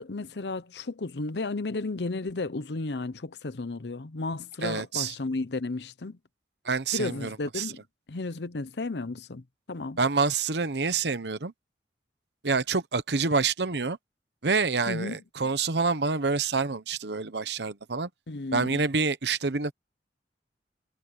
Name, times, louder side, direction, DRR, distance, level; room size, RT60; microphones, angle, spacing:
voice 1, 0.0-6.2 6.9-7.8 8.1-10.0 14.9-15.2 18.3-18.9, left 3 dB, 70° left, 0.8 m, -33 dB
voice 2, 4.6-5.1 6.6-7.7 10.0-11.5 12.4-14.0 14.4-18.1 18.5-19.7, right 4 dB, 70° right, 1.0 m, -27 dB
head